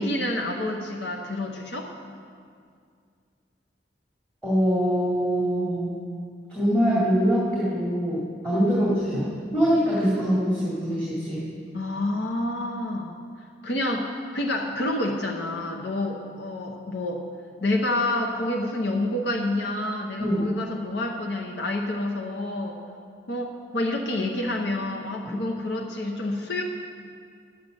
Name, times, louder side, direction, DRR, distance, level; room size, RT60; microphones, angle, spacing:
voice 1, 0.0-1.9 8.5-8.7 11.7-13.2 13.6-17.2 17.6-22.8 23.3-26.6, left 1 dB, 75° left, 1 dB, 0.9 m, -28 dB
voice 2, 4.4-6.0 6.5-9.3 9.5-11.4 20.2-20.5 25.2-25.3, equal, 10° left, -9 dB, 2.2 m, -23 dB
11.0 x 7.9 x 6.3 m, 2.2 s
head